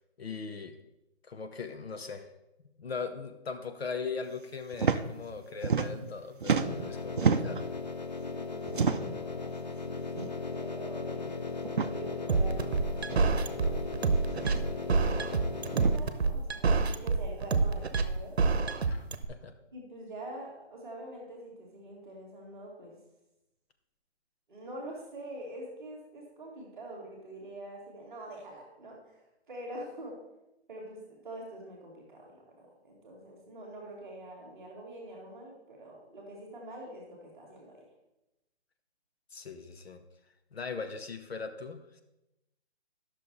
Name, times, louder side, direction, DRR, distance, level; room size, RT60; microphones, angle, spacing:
voice 1, 0.2-0.8 1.2-2.3 2.6-7.6 18.9-19.6 39.3-40.0 40.5-42.0, left 5 dB, 65° left, 7 dB, 1.0 m, -39 dB
sound 1, 4.7-5.0 5.3-6.1 6.4-7.7 8.7-9.2 10.1-10.3 10.6-10.7 11.6-11.9 13.1-13.2 14.3-14.6 15.7-16.0, right 5 dB, 50° right, 0.5 m, -29 dB
sound 2, 6.6-16.0, left 4 dB, 40° left, 0.4 m, -37 dB
voice 2, 8.3-11.3 11.7-18.4 19.7-23.0 24.5-30.2 30.7-37.8, right 1 dB, ahead, -13 dB, 1.1 m, -45 dB
sound 3, 12.3-19.2, right 4 dB, 70° right, 0.8 m, -27 dB
10.0 x 6.5 x 4.0 m, 0.93 s
hypercardioid pair, 180°, 33 cm